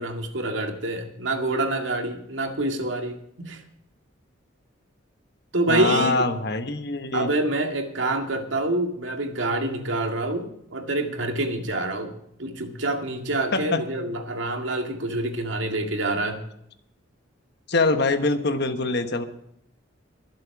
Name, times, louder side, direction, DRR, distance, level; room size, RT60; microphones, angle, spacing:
voice 1, 0.0-3.6 5.5-6.3 7.1-12.1 12.4-16.4, right 2 dB, 70° right, 4 dB, 2.1 m, -26 dB
voice 2, 5.7-7.3 13.5-13.8 17.7-19.2, left 3 dB, 55° left, 9 dB, 1.2 m, -24 dB
22.5 x 7.7 x 4.8 m, 0.75 s
head